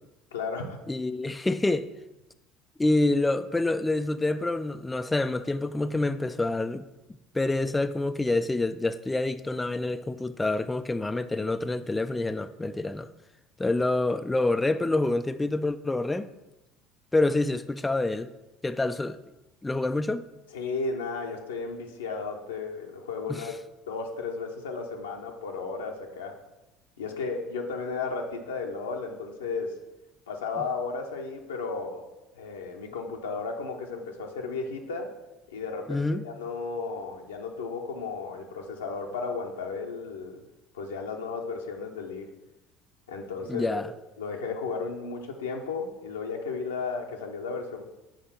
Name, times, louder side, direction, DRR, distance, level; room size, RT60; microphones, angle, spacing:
voice 1, 0.3-0.8 20.5-23.6 23.9-26.4 27.0-29.7 30.3-32.0 32.3-35.1 35.5-40.4 40.7-42.3 43.1-43.8 44.2-47.9, left 4 dB, 80° left, 0.7 m, -34 dB
voice 2, 0.9-1.9 2.8-6.8 7.3-13.1 13.6-16.3 17.1-18.3 18.6-19.2 19.6-20.2 23.3-23.5 35.9-36.2 43.5-43.9, left 2 dB, 15° left, 0.3 m, -27 dB
5.0 x 5.0 x 5.6 m
figure-of-eight pair, 65°, 0 cm